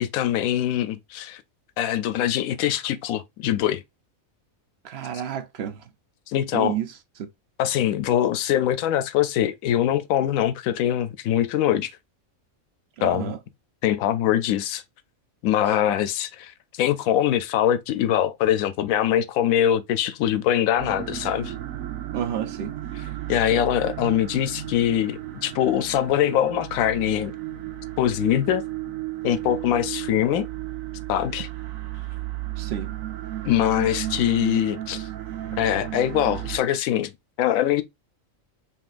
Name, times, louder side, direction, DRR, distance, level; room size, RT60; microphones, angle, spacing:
voice 1, 0.0-1.4 1.8-3.8 6.3-6.7 7.6-11.9 13.0-13.3 13.8-14.8 15.4-21.5 23.3-27.3 28.0-28.6 29.2-30.5 31.1-31.5 33.4-35.1 35.6-37.1 37.4-37.8, left 11 dB, 80° left, 1.0 m, -23 dB
voice 2, 4.8-5.8 6.5-6.9 7.2-7.3 13.0-13.4 15.7-15.8 22.1-22.8 32.6-32.9, right 9 dB, 60° right, 0.7 m, -30 dB
sound 1, 20.8-36.6, right 14 dB, 80° right, 1.1 m, -34 dB
5.4 x 2.9 x 2.4 m
omnidirectional pair, 1.4 m